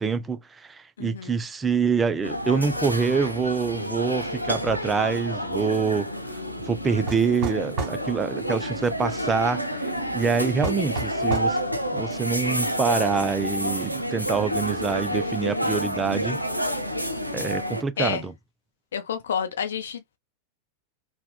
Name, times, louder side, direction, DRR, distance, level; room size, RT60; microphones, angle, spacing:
voice 1, 0.0-6.1 6.7-9.8 10.1-11.6 11.9-16.4 17.3-18.3, right 5 dB, 15° right, 0.4 m, -26 dB
voice 2, 1.0-1.3 18.0-18.3 18.9-20.2, left 7 dB, 65° left, 0.7 m, -29 dB
sound 1, 2.2-17.8, equal, 90° right, 0.4 m, -29 dB
sound 2, 7.1-8.0 10.6-11.6, right 4 dB, 40° right, 1.2 m, -30 dB
3.5 x 2.2 x 2.2 m
figure-of-eight pair, 90°, 0 cm